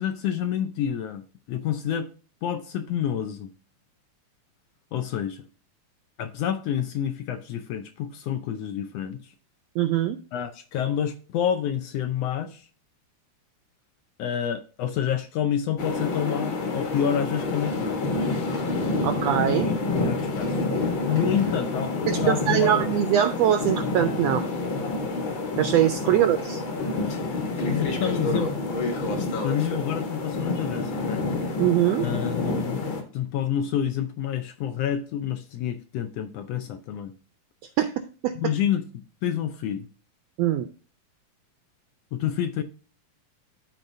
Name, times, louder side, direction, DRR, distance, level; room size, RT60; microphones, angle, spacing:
voice 1, 0.0-2.1 2.4-3.5 4.9-5.5 6.2-9.3 10.3-12.7 14.2-18.0 19.6-20.7 21.1-22.8 26.1-26.2 27.7-28.5 29.1-31.3 32.0-37.1 38.3-39.9 42.1-42.6, left 9 dB, 75° left, 1.5 m, -28 dB
voice 2, 9.8-10.2 19.0-19.7 22.1-24.4 25.6-26.6 31.6-32.0 37.8-37.9 38.2-38.3 40.4-40.7, right 11 dB, 80° right, 1.5 m, -22 dB
sound 1, 15.8-33.0, left 3 dB, 50° left, 1.8 m, -28 dB
13.5 x 4.5 x 2.7 m
omnidirectional pair, 3.5 m